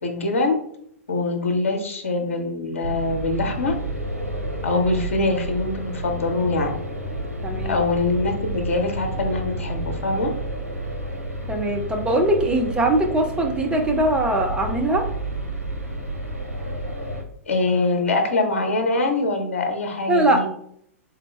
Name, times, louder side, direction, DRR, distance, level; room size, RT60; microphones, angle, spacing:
voice 1, 0.0-0.6 1.1-3.7 4.6-6.8 7.6-10.3 17.5-20.5, left 2 dB, 60° left, 4 dB, 0.9 m, -23 dB
sound 1, 2.8-17.2, right 1 dB, 80° right, 0.7 m, -30 dB
voice 2, 7.4-7.8 11.5-15.0 20.1-20.5, right 1 dB, 10° right, 2 dB, 0.4 m, -21 dB
3.9 x 2.1 x 4.2 m, 0.68 s
figure-of-eight pair, 105°, 8 cm